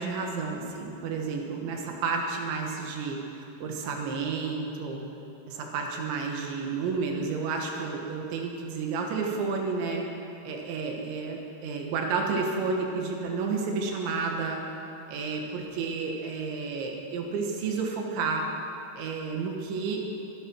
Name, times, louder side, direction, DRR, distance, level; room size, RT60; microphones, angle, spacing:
voice 1, 0.0-5.1 5.5-10.1 10.4-14.6 15.1-18.5 19.0-20.1, right 4 dB, 80° right, 1 dB, 3.9 m, -31 dB
24.0 x 11.0 x 4.7 m, 2.8 s
omnidirectional pair, 5.2 m